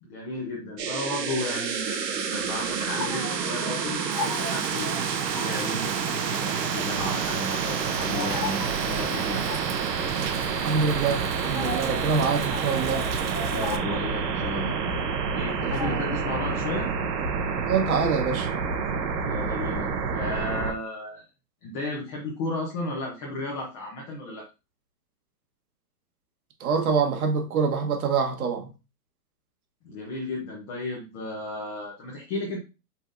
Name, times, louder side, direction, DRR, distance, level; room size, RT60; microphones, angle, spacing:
voice 1, 0.0-5.1 5.4-9.4 13.5-14.8 15.3-16.9 19.2-21.2 21.6-24.5 29.8-32.6, left 2 dB, 20° left, 0.7 m, -34 dB
sound 1, 0.8-20.7, right 6 dB, 80° right, 1.1 m, -28 dB
sound 2, 2.4-16.7, left 3 dB, 75° left, 1.5 m, -40 dB
Rain, 4.1-13.8, right 7 dB, 40° right, 0.5 m, -37 dB
voice 2, 10.6-13.1 15.6-16.0 17.7-18.5 26.6-28.7, right 5 dB, 60° right, 1.4 m, -25 dB
5.5 x 3.5 x 2.6 m
hypercardioid pair, 150°, 49 cm